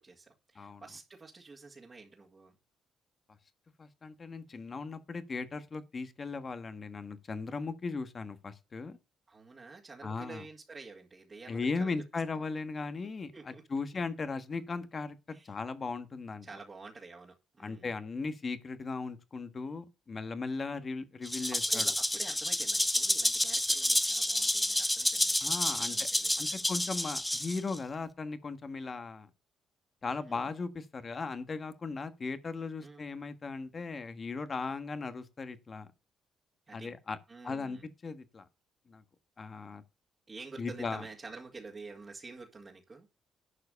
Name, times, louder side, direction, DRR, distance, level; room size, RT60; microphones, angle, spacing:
voice 1, 0.0-2.5 9.3-12.0 12.3-12.4 13.3-13.6 15.3-15.5 16.4-17.9 21.5-26.7 30.1-30.5 32.8-33.1 36.7-36.9 37.3-37.9 40.3-43.1, right 4 dB, 30° right, 2.1 m, -49 dB
voice 2, 3.8-9.0 10.0-10.4 11.5-15.1 15.4-16.5 17.6-21.9 25.4-25.9 26.4-29.3 30.0-35.9 36.7-37.2 37.4-38.5 38.9-39.0 39.4-39.8 40.6-41.0, left 4 dB, 35° left, 1.3 m, -37 dB
Rattle (instrument), 21.2-27.8, left 1 dB, 10° left, 0.8 m, -29 dB
11.5 x 4.8 x 6.6 m
cardioid pair, 90°, 0 cm